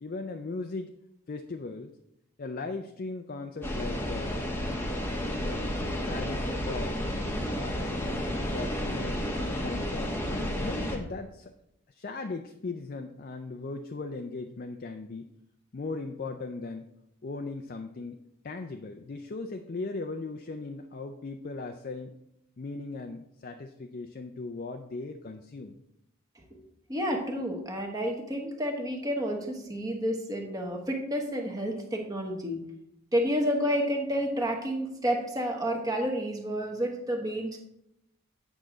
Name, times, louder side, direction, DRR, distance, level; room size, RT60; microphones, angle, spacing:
voice 1, 0.0-0.9 1.3-1.9 2.4-4.5 5.5-7.0 7.6-7.8 8.1-11.5 11.9-15.3 15.7-16.9 17.2-22.1 22.6-25.8, left 3 dB, 40° left, 5 dB, 0.4 m, -38 dB
sound 1, 3.6-11.0, equal, 10° left, 0.9 m, -31 dB
voice 2, 26.9-32.6 33.1-37.6, equal, 15° right, 1 dB, 1.1 m, -30 dB
8.6 x 6.1 x 3.8 m, 0.80 s
head